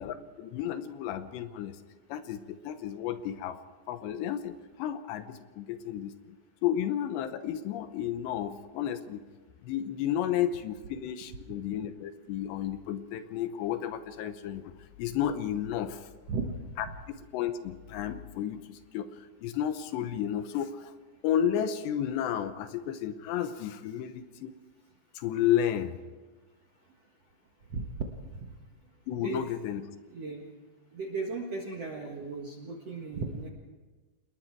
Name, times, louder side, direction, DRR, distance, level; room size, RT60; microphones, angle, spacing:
voice 1, 0.0-1.8 2.1-3.6 3.9-6.1 6.6-9.2 9.6-14.7 15.0-16.1 16.8-16.9 17.3-20.9 21.2-24.5 25.2-26.0 29.1-29.8, left 10 dB, 75° left, 10 dB, 3.0 m, -32 dB
voice 2, 16.3-16.6 27.7-27.9 28.3-28.5 29.2-29.5 30.1-30.4 30.9-33.5, right 4 dB, 60° right, 1 dB, 1.7 m, -36 dB
28.0 x 20.0 x 4.7 m, 1.3 s
omnidirectional pair, 5.2 m